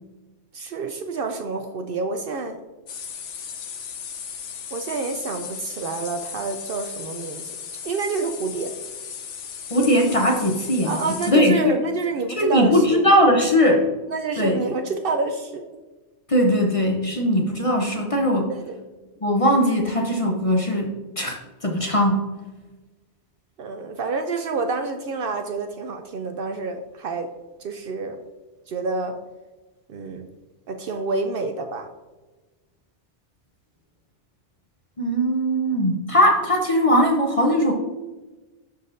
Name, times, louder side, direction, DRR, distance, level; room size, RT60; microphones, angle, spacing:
voice 1, 0.5-2.6 4.7-7.5 7.8-8.7 10.8-13.0 14.1-15.6 18.5-18.8 23.6-27.3 27.6-28.2 28.7-29.2 29.9-30.3 30.7-31.9, right 4 dB, 60° right, 6 dB, 0.6 m, -28 dB
sound 1, 2.9-11.3, left 7 dB, 80° left, 1.1 m, -36 dB
voice 2, 9.7-11.8 12.4-13.9 14.4-14.6 16.3-18.5 19.2-22.3 35.0-37.7, equal, 35° left, 2 dB, 0.7 m, -20 dB
11.5 x 4.0 x 2.6 m, 1.2 s
omnidirectional pair, 1.2 m